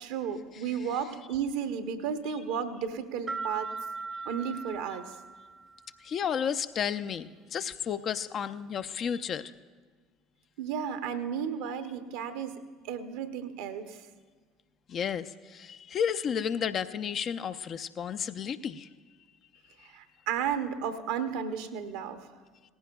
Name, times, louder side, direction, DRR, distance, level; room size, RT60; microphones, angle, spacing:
voice 1, 0.0-3.7 4.2-5.1 10.6-12.6 12.9-14.0 19.8-22.2, right 7 dB, 65° right, 8 dB, 0.8 m, -33 dB
sound 1, 3.3-5.9, right 3 dB, 20° right, 0.4 m, -39 dB
voice 2, 6.0-9.5 14.9-18.9 19.7-19.9, left 7 dB, 45° left, 11 dB, 0.5 m, -32 dB
18.5 x 15.0 x 2.3 m, 1.5 s
figure-of-eight pair, 65°, 0 cm